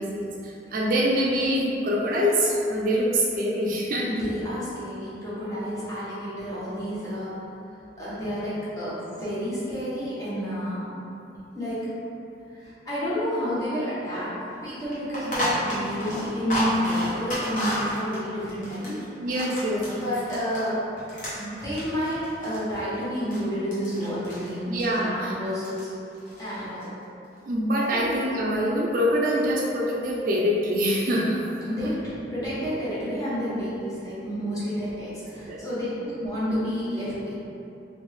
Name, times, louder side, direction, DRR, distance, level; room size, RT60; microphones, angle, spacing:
voice 1, 0.0-4.1 8.2-8.3 19.2-20.1 24.7-25.3 27.4-31.4 35.5-35.6, equal, 50° right, -4 dB, 0.4 m, -25 dB
voice 2, 4.1-7.3 8.0-10.8 11.5-11.9 12.5-14.3 14.6-19.0 19.9-20.8 21.3-25.9 26.4-26.9 27.9-28.1 31.6-32.0 32.3-37.3, equal, 20° left, -11 dB, 1.0 m, -30 dB
sound 1, 14.1-14.2 14.5-14.6 14.9-20.7 21.0-23.4 23.7-24.5 24.8-25.0 25.4-25.8 26.1-26.8, equal, 45° left, 1.0 m, -31 dB
3.4 x 2.5 x 3.1 m, 2.8 s
head